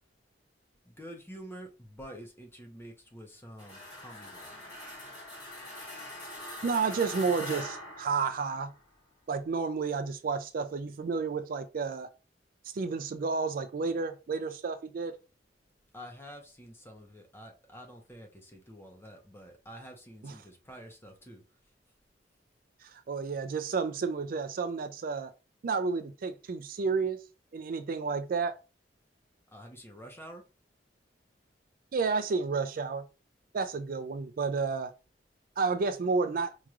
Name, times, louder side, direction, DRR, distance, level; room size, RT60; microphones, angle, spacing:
voice 1, 0.8-4.7 15.9-21.4 29.5-30.4, equal, 15° left, 0.9 m, -48 dB
sound 1, 3.6-8.8, left 1 dB, 30° left, 2.2 m, -43 dB
voice 2, 6.6-8.7 9.3-12.1 12.7-15.2 20.2-20.3 22.8-25.3 25.6-27.2 27.5-28.5 31.9-33.0 33.5-34.9 35.6-36.5, right 4 dB, 50° right, 0.4 m, -31 dB
4.6 x 3.0 x 2.4 m
head